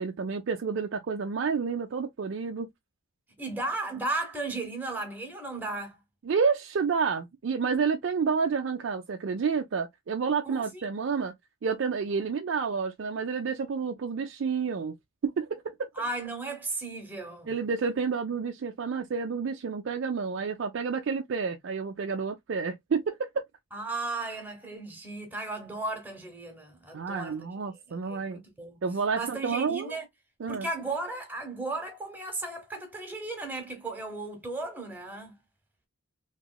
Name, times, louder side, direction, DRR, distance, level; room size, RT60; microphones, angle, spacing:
voice 1, 0.0-2.7 6.2-11.3 11.6-14.9 15.2-15.9 17.5-23.4 26.9-28.4 28.8-30.0 30.4-30.7, right 5 dB, 60° right, 0.4 m, -29 dB
voice 2, 3.4-6.0 10.4-10.8 16.0-17.5 23.7-28.8 29.1-30.1 30.5-35.3, right 2 dB, 10° right, 0.9 m, -35 dB
2.9 x 2.9 x 2.2 m
head